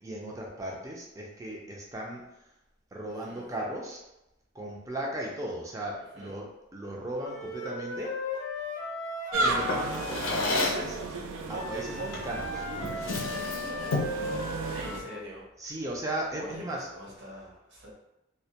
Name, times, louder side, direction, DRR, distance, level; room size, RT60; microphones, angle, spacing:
voice 1, 0.0-2.2 2.9-4.0 4.5-8.1 9.4-11.0 11.5-13.4 15.6-16.9, right 1 dB, 15° right, -1 dB, 0.4 m, -37 dB
Wind instrument woodwind instrument, 7.2-10.7 11.5-15.2, left 2 dB, 40° left, 0.6 m, -37 dB
sound 1, 9.3-15.0, right 2 dB, 90° right, 0.3 m, -34 dB
Drawer open or close, 9.7-10.9 12.1-12.4 12.8-14.2, left 2 dB, 90° left, 0.5 m, -31 dB
voice 2, 10.6-11.1 14.7-15.7 16.3-16.6 16.9-17.9, equal, 65° right, -5 dB, 0.9 m, -45 dB
2.1 x 2.1 x 2.7 m, 0.89 s
head